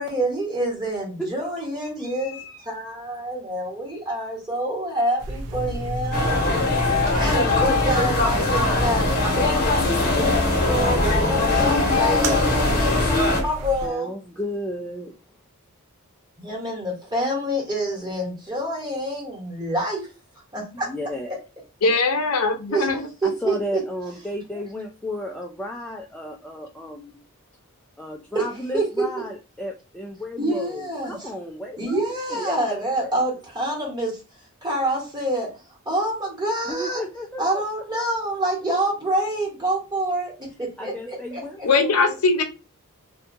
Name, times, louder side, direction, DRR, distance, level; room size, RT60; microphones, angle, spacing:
voice 1, 0.0-2.4 2.6-6.5 6.9-9.6 10.0-14.1 16.4-20.1 20.5-20.9 21.3-21.4 22.7-23.0 23.2-23.8 28.3-28.5 28.7-28.9 30.4-31.3 31.8-34.2 34.6-37.0 37.4-41.4, right 1 dB, 20° right, -2 dB, 1.1 m, -27 dB
voice 2, 1.2-2.6 13.8-15.1 20.9-21.3 23.2-27.2 28.0-32.7 33.0-33.1 36.6-37.6 40.6-42.2, left 1 dB, 5° left, 0 dB, 0.3 m, -34 dB
sound 1, 5.2-13.9, right 1 dB, 75° right, 0.4 m, -33 dB
sound 2, 5.5-9.4 11.6-11.7 12.1-13.2, left 1 dB, 60° right, 1.0 m, -32 dB
sound 3, 6.1-13.4, left 2 dB, 45° left, 0.9 m, -21 dB
voice 3, 21.8-23.1 41.6-42.4, left 3 dB, 70° left, 5 dB, 0.6 m, -20 dB
2.7 x 2.2 x 2.5 m, 0.31 s
head